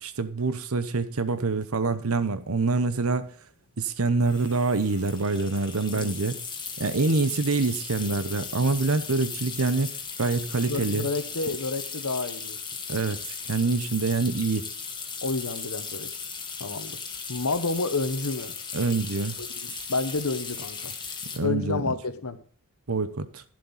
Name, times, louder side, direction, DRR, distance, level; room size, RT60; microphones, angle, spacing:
voice 1, 0.0-3.3 3.8-6.4 6.8-9.9 10.2-11.1 12.9-14.7 18.7-19.4 21.3-21.9 22.9-23.4, right 3 dB, 75° right, 1.0 m, -26 dB
sound 1, 2.3-2.4 2.6-2.9 4.2-21.4, left 5 dB, 20° left, 1.5 m, -37 dB
voice 2, 5.9-6.3 10.6-12.6 15.2-16.1 16.6-17.0 17.3-18.5 19.4-20.9 21.4-22.4, left 3 dB, 90° left, 1.3 m, -30 dB
11.0 x 7.6 x 5.5 m
head